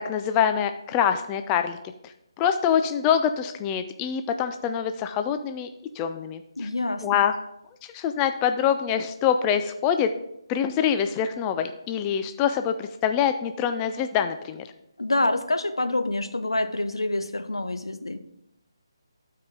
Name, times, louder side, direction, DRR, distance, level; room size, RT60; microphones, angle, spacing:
voice 1, 0.0-1.8 2.0-2.1 2.4-5.7 6.0-6.4 7.0-7.3 7.9-10.1 10.5-14.7, left 8 dB, 15° left, 8 dB, 0.3 m, -25 dB
voice 2, 6.6-7.3 15.0-18.2, left 2 dB, 90° left, 10 dB, 0.7 m, -27 dB
11.5 x 4.8 x 3.8 m, 0.82 s
figure-of-eight pair, 155°, 3 cm